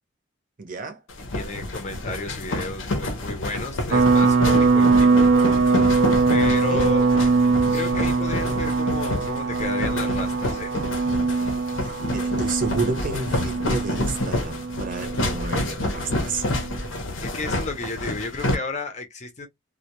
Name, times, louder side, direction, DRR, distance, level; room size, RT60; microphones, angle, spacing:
voice 1, 0.6-1.0 6.5-6.8 11.8-16.5, right 3 dB, 45° right, 0.6 m, -31 dB
sound 1, 1.1-18.5, left 1 dB, 80° left, 0.6 m, -29 dB
voice 2, 1.3-5.3 6.3-7.0 7.7-10.7 17.2-19.5, left 3 dB, 35° left, 0.5 m, -32 dB
sound 2, 3.9-16.8, right 4 dB, 90° right, 0.4 m, -22 dB
2.1 x 2.1 x 2.9 m
head